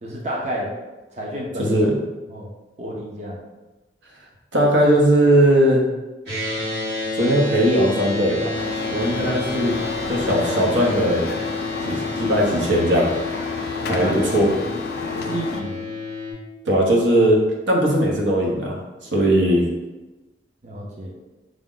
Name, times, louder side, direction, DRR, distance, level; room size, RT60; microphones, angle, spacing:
voice 1, 0.0-0.7 1.1-1.9 2.3-2.5 2.8-3.4 13.8-14.6 15.1-15.9 20.6-21.1, right 1 dB, 40° right, -2 dB, 0.5 m, -30 dB
voice 2, 1.6-2.0 4.5-5.8 7.2-8.5 8.9-9.8 10.1-11.3 11.8-13.1 13.6-14.5 16.6-17.4 17.7-18.8 19.1-19.7, right 1 dB, 85° right, -1 dB, 0.9 m, -18 dB
sound 1, 6.3-16.3, left 2 dB, 65° right, 1.2 m, -29 dB
sound 2, 8.5-15.6, left 4 dB, 55° left, 0.3 m, -31 dB
4.8 x 2.1 x 3.8 m, 1.1 s
head